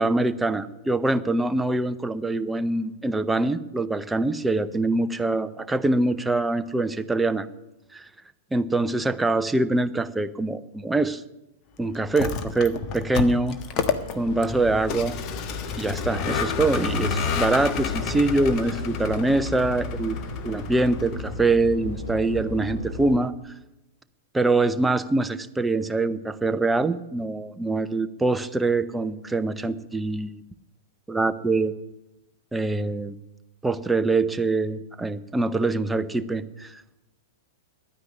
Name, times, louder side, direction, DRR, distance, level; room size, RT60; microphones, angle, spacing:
voice 1, 0.0-7.5 7.9-8.1 8.5-11.2 11.8-13.6 14.2-15.2 15.8-20.2 20.4-23.3 24.3-30.3 31.1-31.7 32.5-33.1 33.6-36.8, right 2 dB, 10° right, 11 dB, 0.8 m, -24 dB
Vehicle, 12.0-21.4, left 5 dB, 35° left, 1.4 m, -30 dB
sound 1, 14.2-23.1, left 2 dB, 70° left, 5.2 m, -35 dB
11.5 x 9.7 x 9.8 m, 0.95 s
figure-of-eight pair, 100°, 0 cm